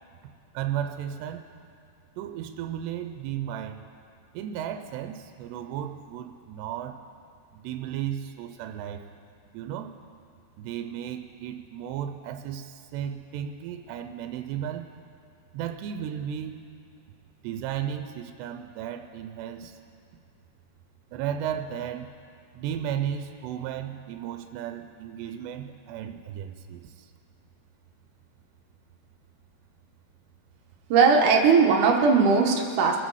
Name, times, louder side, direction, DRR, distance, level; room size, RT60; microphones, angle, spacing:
voice 1, 0.5-1.4 2.2-3.8 4.3-7.0 7.5-9.1 9.5-10.0 10.6-14.9 15.5-16.6 17.4-19.8 21.1-22.1 22.6-27.1, right 10 dB, 85° right, 6 dB, 2.7 m, -34 dB
voice 2, 30.9-33.0, right 5 dB, 70° right, 1 dB, 2.0 m, -19 dB
24.0 x 8.3 x 4.7 m, 2.4 s
omnidirectional pair, 4.9 m